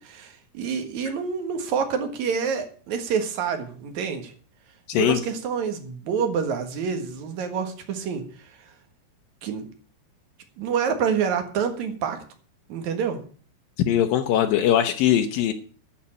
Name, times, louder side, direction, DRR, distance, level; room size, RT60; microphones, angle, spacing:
voice 1, 0.0-4.3 4.9-8.2 9.4-9.6 10.6-12.2 12.7-13.2, right 6 dB, 55° right, 7 dB, 2.3 m, -27 dB
voice 2, 4.9-5.2 13.9-15.5, left 10 dB, 90° left, 6 dB, 2.0 m, -21 dB
13.0 x 5.7 x 8.7 m, 0.44 s
omnidirectional pair, 5.1 m